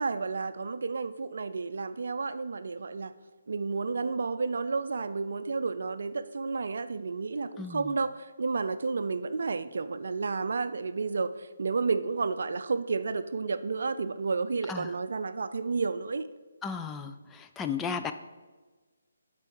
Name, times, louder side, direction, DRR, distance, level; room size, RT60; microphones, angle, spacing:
voice 1, 0.0-3.1 3.5-16.3, right 4 dB, 65° right, 12 dB, 0.4 m, -31 dB
voice 2, 7.6-8.0 14.7-14.9 16.6-18.1, left 6 dB, 10° left, 7 dB, 0.3 m, -35 dB
8.4 x 4.1 x 4.6 m, 1.3 s
figure-of-eight pair, 150°, 0 cm